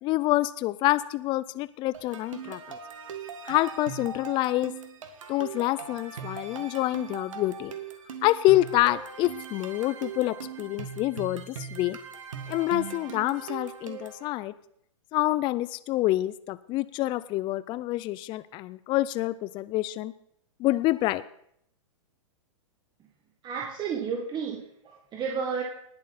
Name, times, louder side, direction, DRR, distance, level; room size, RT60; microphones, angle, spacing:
voice 1, 0.0-2.8 3.4-4.7 5.3-7.7 8.2-12.0 12.5-14.5 15.1-20.1 20.6-21.2, left 17 dB, 30° left, 16 dB, 0.4 m, -27 dB
sound 1, 1.9-14.3, right 7 dB, 75° right, 1.8 m, -40 dB
voice 2, 23.4-25.6, right 6 dB, 25° right, -1 dB, 1.8 m, -32 dB
19.5 x 7.4 x 4.2 m, 0.71 s
hypercardioid pair, 120°, 17 cm